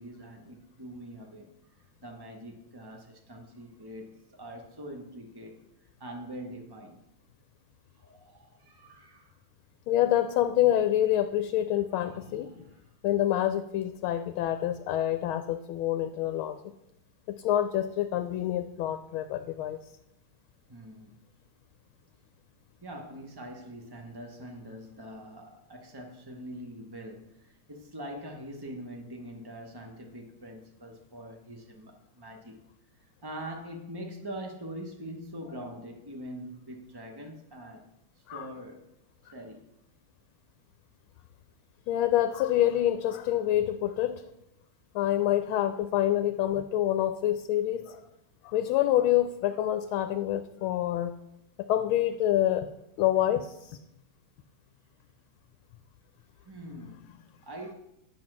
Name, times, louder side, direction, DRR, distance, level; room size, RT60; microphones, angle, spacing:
voice 1, 0.0-1.5 1.7-7.0 7.9-9.4 12.0-12.9 15.8-15.9 20.7-21.2 22.8-32.6 33.0-37.9 38.2-38.9 39.3-39.6 56.4-57.7, right 1 dB, 35° right, 0.3 m, -44 dB
voice 2, 9.9-12.6 13.0-16.6 17.3-19.8 38.3-38.5 41.9-44.2 44.9-48.0 48.4-51.1 51.7-52.7 53.0-53.8, left 12 dB, 80° left, 1.4 m, -27 dB
9.7 x 7.2 x 6.0 m
omnidirectional pair, 2.3 m